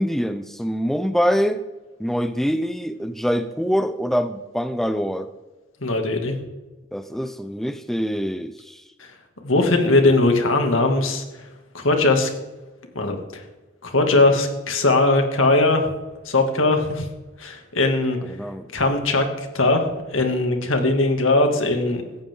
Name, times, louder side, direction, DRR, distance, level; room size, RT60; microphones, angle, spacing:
voice 1, 0.0-1.6 2.0-5.3 6.9-8.8 18.3-18.7, equal, ahead, 10 dB, 0.5 m, -24 dB
voice 2, 5.8-6.3 9.0-9.1 9.4-11.2 11.7-12.3 12.9-13.4 13.8-15.9 16.2-17.1 17.4-18.2 18.7-22.0, left 2 dB, 80° left, 4 dB, 2.5 m, -20 dB
17.0 x 14.5 x 3.9 m, 1.1 s
head